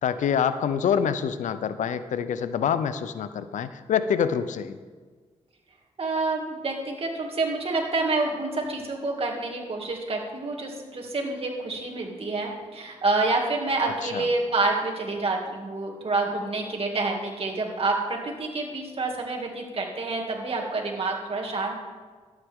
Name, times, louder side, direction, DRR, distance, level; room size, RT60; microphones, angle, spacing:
voice 1, 0.0-4.8 14.0-14.3, left 7 dB, 85° left, 12 dB, 0.5 m, -26 dB
voice 2, 6.0-21.7, right 3 dB, 50° right, 0 dB, 2.4 m, -28 dB
13.0 x 9.1 x 3.6 m, 1.5 s
cardioid pair, 60°, 12 cm